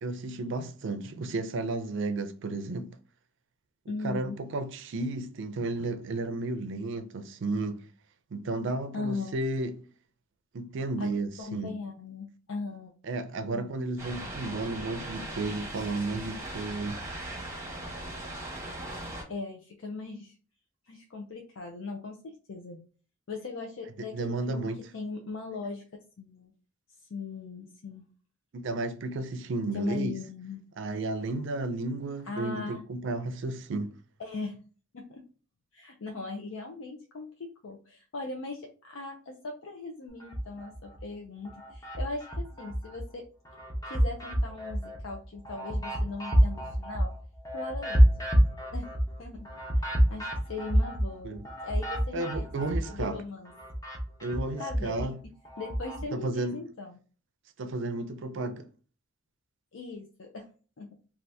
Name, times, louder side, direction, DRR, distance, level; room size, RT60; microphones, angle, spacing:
voice 1, 0.0-2.9 3.9-7.8 8.3-9.8 10.5-11.7 13.0-17.0 24.1-24.9 28.5-30.2 30.8-33.9 51.2-51.4 52.1-53.2 54.2-55.2 56.1-56.6 57.6-58.7, right 2 dB, 65° right, 0.4 m, -33 dB
voice 2, 3.9-4.4 8.9-9.4 11.0-11.1 11.4-12.9 13.5-13.7 19.3-20.3 20.9-22.8 23.3-25.8 26.2-26.5 27.1-28.0 29.7-30.6 32.2-32.8 34.2-34.6 34.9-35.2 35.7-43.2 43.8-47.1 47.5-48.3 48.7-48.9 49.2-49.5 49.7-51.3 51.6-52.5 52.9-53.5 54.6-55.1 55.6-57.0 59.7-60.5 60.8-60.9, left 3 dB, 75° left, 0.5 m, -39 dB
sound 1, 14.0-19.2, right 1 dB, 15° right, 0.9 m, -39 dB
sound 2, 40.2-41.0 41.4-43.0 43.4-53.2 53.4-56.0, equal, 20° left, 0.8 m, -28 dB
2.7 x 2.4 x 3.3 m
head